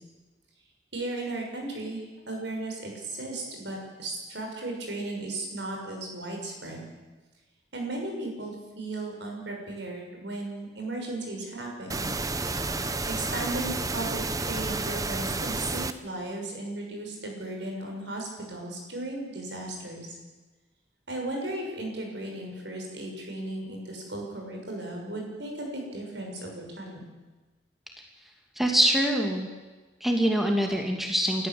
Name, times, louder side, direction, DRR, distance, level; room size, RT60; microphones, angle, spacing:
voice 1, 0.9-6.9 7.7-12.1 13.1-20.1 21.1-27.1, right 2 dB, 65° right, 1 dB, 6.5 m, -36 dB
sound 1, 11.9-15.9, right 3 dB, 20° right, 0.9 m, -30 dB
voice 2, 28.6-29.5 30.0-31.5, equal, ahead, 1 dB, 2.5 m, -24 dB
29.0 x 14.0 x 7.9 m, 1.2 s
head